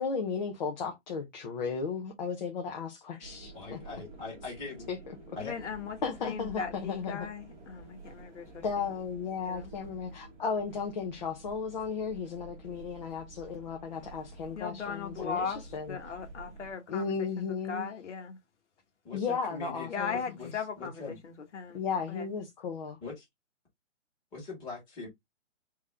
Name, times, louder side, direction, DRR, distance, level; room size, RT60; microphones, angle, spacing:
voice 1, 0.0-3.8 4.9-5.0 6.0-7.3 8.6-16.0 16.9-17.9 19.1-20.2 21.7-23.0, left 5 dB, 40° left, 0.8 m, -35 dB
sound 1, 3.2-16.7, right 3 dB, 15° right, 1.0 m, -50 dB
voice 2, 3.5-4.9 5.4-5.5 15.2-15.3 19.0-20.5 20.8-21.2 23.0-23.2 24.3-25.1, left 4 dB, 15° left, 1.7 m, -41 dB
voice 3, 5.4-8.9 9.4-9.7 14.5-15.6 15.9-18.4 19.9-21.8 22.1-22.3, left 6 dB, 70° left, 1.5 m, -38 dB
3.8 x 3.0 x 3.4 m
hypercardioid pair, 165°, 37 cm